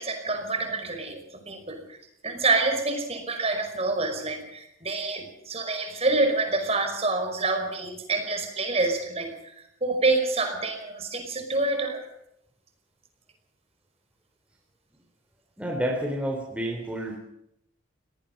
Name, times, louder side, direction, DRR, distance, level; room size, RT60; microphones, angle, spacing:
voice 1, 0.0-2.0 2.2-12.1, right 3 dB, 30° right, 5 dB, 5.4 m, -27 dB
voice 2, 15.6-17.2, right 1 dB, 5° right, 0 dB, 3.5 m, -29 dB
27.0 x 19.0 x 5.4 m, 0.76 s
head